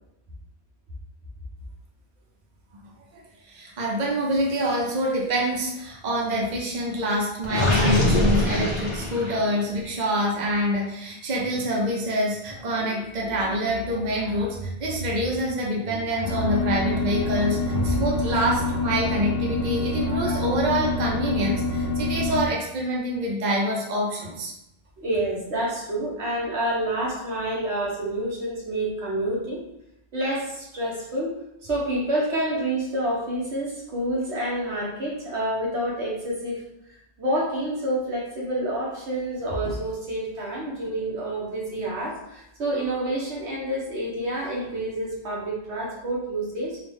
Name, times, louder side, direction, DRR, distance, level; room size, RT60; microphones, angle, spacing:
voice 1, 3.5-24.5, equal, 45° right, -2 dB, 0.8 m, -26 dB
Gurgling, 7.4-9.6, left 1 dB, 30° left, 0.9 m, -22 dB
sound 1, 16.2-22.5, left 2 dB, 65° left, 0.8 m, -26 dB
voice 2, 25.0-29.6 30.1-31.3 31.6-36.6 37.2-46.8, right 1 dB, 80° right, -4 dB, 1.4 m, -28 dB
3.9 x 2.4 x 3.5 m, 0.80 s
omnidirectional pair, 1.1 m